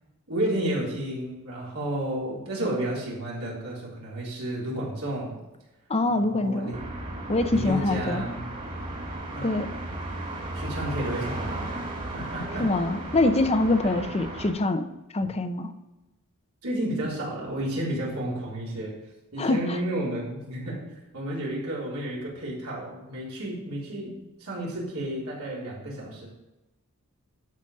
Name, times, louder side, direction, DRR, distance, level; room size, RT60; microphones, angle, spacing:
voice 1, 0.3-5.4 6.1-6.8 7.5-8.5 9.3-9.7 10.5-11.8 12.1-12.7 13.8-14.0 16.6-18.9 19.3-20.8 21.1-26.3, right 1 dB, 75° right, -5 dB, 3.9 m, -32 dB
voice 2, 5.9-6.7 7.3-8.2 9.4-9.7 12.6-14.9 15.1-15.7 19.4-19.8, left 2 dB, 30° left, 9 dB, 0.7 m, -24 dB
sound 1, 6.7-14.5, right 1 dB, 35° right, 2.4 m, -35 dB
12.0 x 5.2 x 5.3 m, 1.0 s
head